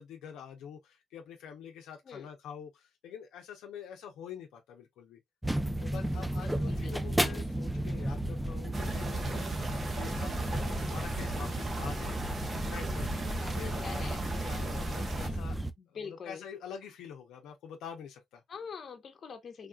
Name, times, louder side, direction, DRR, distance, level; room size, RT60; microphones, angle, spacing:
voice 1, 0.0-5.2 5.8-12.2 12.5-14.1 14.4-15.6 15.9-18.4, left 7 dB, 85° left, 0.7 m, -46 dB
sound 1, 5.4-15.7, right 1 dB, 5° right, 0.4 m, -33 dB
voice 2, 6.3-7.2 13.2-14.2 15.8-16.4 18.5-19.7, left 6 dB, 50° left, 0.9 m, -45 dB
sound 2, 8.7-15.3, right 2 dB, 35° right, 0.8 m, -39 dB
3.6 x 2.4 x 2.3 m
cardioid pair, 90°, 0 cm